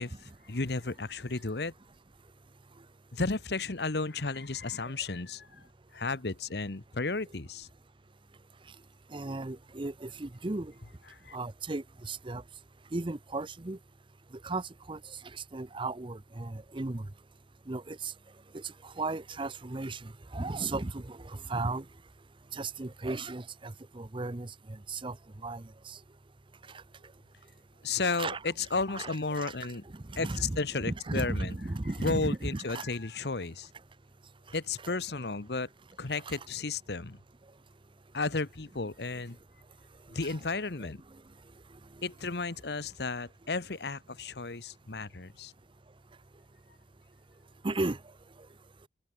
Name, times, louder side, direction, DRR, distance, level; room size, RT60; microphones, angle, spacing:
voice 1, 0.0-1.7 3.1-5.5 5.9-7.7 11.2-11.4 27.8-29.8 30.2-31.6 32.0-33.7 34.5-35.7 36.0-37.2 38.1-39.4 40.1-41.0 42.0-45.5, left 3 dB, 65° left, 1.2 m, -33 dB
voice 2, 9.1-10.7 11.3-12.4 12.9-13.8 14.4-15.0 15.5-17.1 17.7-18.1 18.5-21.8 22.5-25.2 25.4-26.0 28.0-28.4 28.9-29.5 29.9-32.8 36.3-36.4 40.3-40.4 47.6-48.0, right 2 dB, 30° right, 0.8 m, -35 dB
head